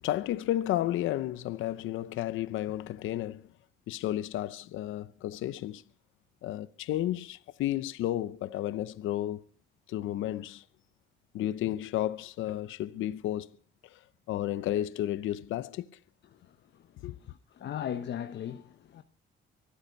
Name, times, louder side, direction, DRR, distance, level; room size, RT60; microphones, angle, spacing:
voice 1, 0.0-3.4 3.9-5.8 6.4-9.4 9.9-10.6 11.3-13.5 13.9-14.0 14.3-15.9 17.0-17.1, left 13 dB, 85° left, 0.7 m, -32 dB
voice 2, 16.3-16.9 17.2-19.0, left 9 dB, 65° left, 1.0 m, -38 dB
25.0 x 8.7 x 5.3 m
cardioid pair, 90°, 20 cm